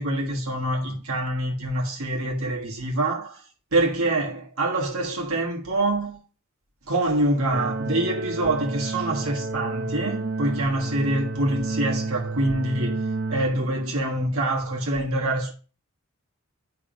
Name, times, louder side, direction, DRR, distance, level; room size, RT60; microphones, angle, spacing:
voice 1, 0.0-3.4 3.7-6.2 6.9-13.0 13.3-15.5, right 1 dB, 80° right, 1.5 m, -25 dB
sound 1, 7.5-13.5, right 3 dB, 55° right, 0.7 m, -30 dB
8.9 x 3.4 x 5.1 m
head